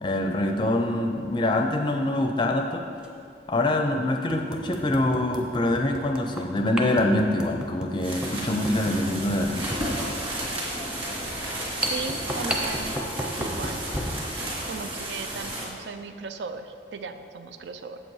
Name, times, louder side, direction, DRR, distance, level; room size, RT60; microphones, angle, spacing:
voice 1, 0.0-2.8 3.5-9.7, left 1 dB, 25° left, 4 dB, 0.4 m, -25 dB
sound 1, 1.3-1.5 3.0-3.1 3.7-3.8 4.3-14.2, equal, 5° right, 0.7 m, -34 dB
sound 2, 8.0-15.7, right 1 dB, 30° right, 2.3 m, -32 dB
voice 2, 11.8-13.8 14.7-18.0, right 4 dB, 80° right, 9 dB, 0.4 m, -37 dB
7.9 x 7.7 x 4.7 m, 2.5 s
head